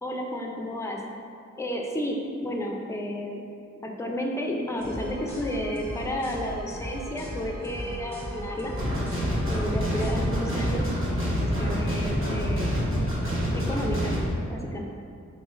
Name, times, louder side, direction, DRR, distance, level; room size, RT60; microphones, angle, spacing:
voice 1, 0.0-1.0 1.6-3.4 3.8-8.8 9.5-10.9 11.3-12.8 13.5-14.2 14.5-14.8, left 1 dB, 10° left, 1 dB, 0.4 m, -32 dB
sound 1, 4.7-10.7, equal, 10° right, 0.9 m, -37 dB
sound 2, 8.8-14.3, equal, 45° right, 1.1 m, -27 dB
4.0 x 3.1 x 2.4 m, 2.4 s
cardioid pair, 60°, 29 cm